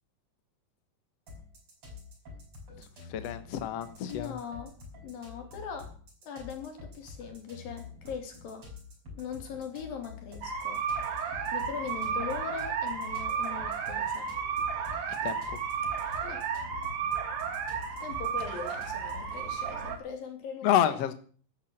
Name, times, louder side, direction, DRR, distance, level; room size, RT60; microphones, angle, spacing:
sound 1, 1.3-19.4, left 4 dB, 40° right, 6.3 m, -47 dB
voice 1, 2.8-4.4 15.2-15.4 20.6-21.1, left 10 dB, 60° left, 10 dB, 1.9 m, -29 dB
voice 2, 4.1-4.8 5.0-6.0 6.2-8.7 9.2-10.8 11.5-14.3 16.2-16.5 18.0-21.0, left 6 dB, 85° left, 5 dB, 4.5 m, -40 dB
sound 2, 10.4-20.0, right 6 dB, 90° right, 4.1 m, -33 dB
12.5 x 10.0 x 7.9 m, 0.44 s
omnidirectional pair, 4.0 m